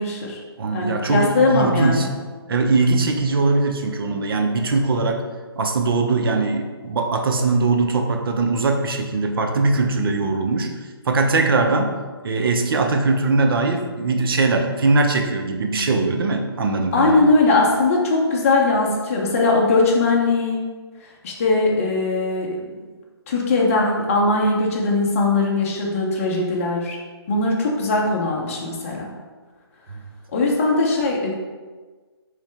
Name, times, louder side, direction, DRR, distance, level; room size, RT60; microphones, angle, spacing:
voice 1, 0.0-0.4 0.7-2.1 16.9-20.6 21.2-22.6 23.3-27.0 27.3-29.1 30.3-31.3, left 3 dB, 35° left, -2 dB, 0.6 m, -20 dB
voice 2, 0.6-2.1 2.5-5.2 5.6-12.0 12.2-17.3 29.9-30.0, right 3 dB, 60° right, 4 dB, 0.5 m, -21 dB
3.2 x 2.7 x 3.3 m, 1.4 s
hypercardioid pair, 155°, 13 cm